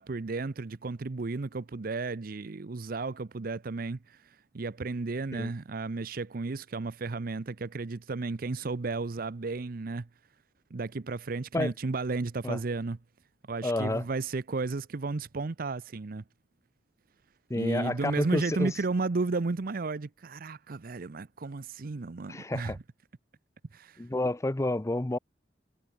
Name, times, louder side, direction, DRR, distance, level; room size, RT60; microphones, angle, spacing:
voice 1, 0.0-10.1 10.7-13.0 13.5-16.2 17.5-22.8 23.7-24.0, right 3 dB, 55° right, 0.6 m, -33 dB
voice 2, 13.6-14.0 17.5-18.7 22.3-22.8 24.0-25.2, left 2 dB, 15° left, 0.6 m, -30 dB
head